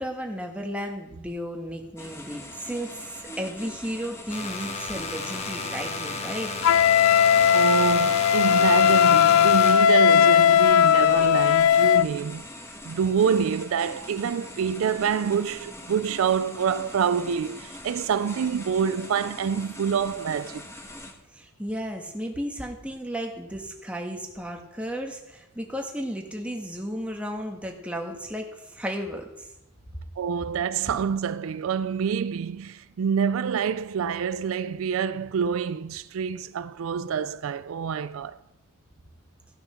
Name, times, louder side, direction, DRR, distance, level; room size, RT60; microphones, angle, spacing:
voice 1, 0.0-6.5 21.3-29.5, equal, 5° right, 1.5 m, -34 dB
sound 1, 2.0-21.1, left 1 dB, 15° left, 1.3 m, -42 dB
sound 2, 4.3-9.7, left 3 dB, 30° left, 1.2 m, -32 dB
Wind instrument woodwind instrument, 6.6-12.1, left 9 dB, 80° left, 0.3 m, -18 dB
voice 2, 7.5-12.5 12.8-20.7 30.2-38.4, right 7 dB, 75° right, 0.4 m, -27 dB
15.0 x 6.8 x 5.7 m
head